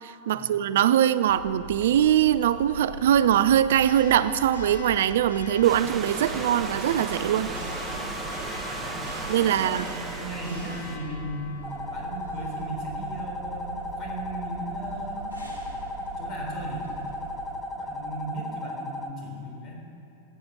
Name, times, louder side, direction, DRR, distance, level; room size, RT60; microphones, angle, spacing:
voice 1, 0.0-7.5 9.3-9.9, right 10 dB, 60° right, 15 dB, 0.3 m, -22 dB
Church bell, 1.3-17.6, equal, 75° left, 1.8 m, -40 dB
Stream / Liquid, 5.6-11.0, right 4 dB, 25° right, 1.2 m, -36 dB
voice 2, 8.7-9.0 9.5-9.9 10.2-11.5 11.9-15.4 15.9-16.9 17.7-19.8, right 1 dB, 30° left, -1 dB, 3.7 m, -37 dB
sound 1, 11.6-19.1, left 1 dB, 10° left, 0.9 m, -35 dB
13.5 x 8.6 x 6.7 m, 2.8 s
figure-of-eight pair, 90°, 0 cm